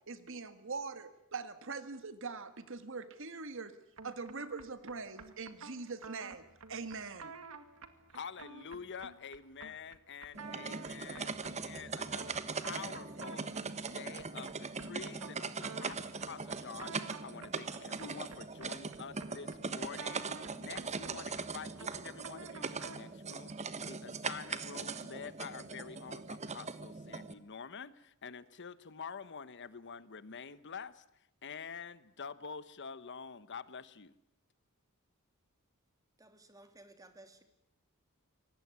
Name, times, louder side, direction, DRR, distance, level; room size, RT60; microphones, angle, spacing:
voice 1, 0.1-3.7 4.0-6.4 6.7-7.3, right 4 dB, 65° right, 11 dB, 1.9 m, -42 dB
sound 1, 4.0-23.2, right 4 dB, 90° right, 2.1 m, -51 dB
voice 2, 8.1-13.5 13.9-23.5 23.9-31.0 31.4-34.1, left 6 dB, 55° left, 16 dB, 1.0 m, -47 dB
sound 2, 10.3-27.3, right 4 dB, 30° right, 1.2 m, -41 dB
voice 3, 36.2-37.4, right 2 dB, 15° right, 7 dB, 2.9 m, -57 dB
24.5 x 19.0 x 9.6 m, 0.79 s
head